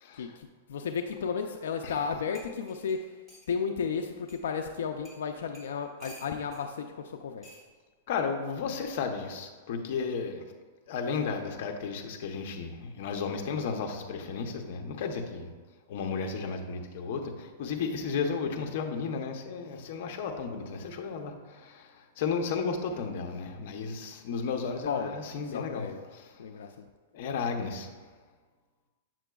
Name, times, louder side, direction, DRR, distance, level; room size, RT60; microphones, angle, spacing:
voice 1, 0.1-7.6 24.8-25.2 25.4-26.0 26.4-26.9, left 6 dB, 85° left, 5 dB, 0.4 m, -34 dB
sound 1, 2.3-3.5 4.3-4.4 5.0-5.2 5.5-6.6 7.4-7.7 8.8-9.0, equal, 10° right, 1.2 m, -51 dB
voice 2, 8.1-10.4 10.9-15.5 15.9-25.9 27.1-27.9, left 5 dB, 50° left, 3 dB, 0.7 m, -33 dB
7.5 x 6.0 x 2.3 m, 1.4 s
supercardioid pair, 165°, 0 cm